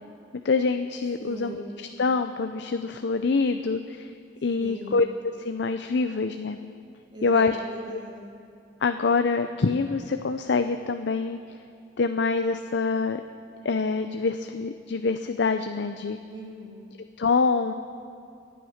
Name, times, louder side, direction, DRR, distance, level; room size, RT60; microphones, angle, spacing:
voice 1, 0.4-4.1 4.4-5.1 5.4-6.6 7.2-7.6 7.9-8.0 8.8-11.4 12.0-13.2 13.6-16.2 17.2-17.7, left 4 dB, 70° left, 8 dB, 0.5 m, -25 dB
voice 2, 1.2-1.7 4.6-5.0 7.1-8.3 16.3-16.9, right 1 dB, 25° right, -2 dB, 2.7 m, -40 dB
25.0 x 9.3 x 5.8 m, 2.4 s
head